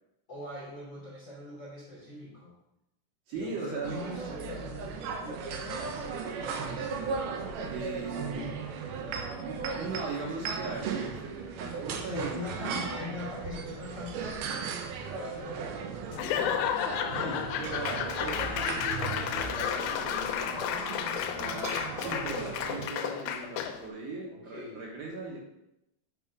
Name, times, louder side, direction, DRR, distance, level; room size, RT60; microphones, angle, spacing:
voice 1, 0.3-2.5 3.3-6.1 6.4-7.9 12.1-15.8 24.3-24.8, left 1 dB, 35° left, -6 dB, 2.1 m, -42 dB
voice 2, 3.3-4.0 7.7-8.4 9.8-13.0 17.2-20.7 21.3-25.4, right 3 dB, 70° right, -3 dB, 2.9 m, -39 dB
sound 1, 3.8-22.9, right 5 dB, 85° right, 2.1 m, -37 dB
Laughter / Applause / Crowd, 16.1-23.9, left 9 dB, 80° left, 3.0 m, -32 dB
9.7 x 4.1 x 6.0 m, 0.87 s
omnidirectional pair, 5.7 m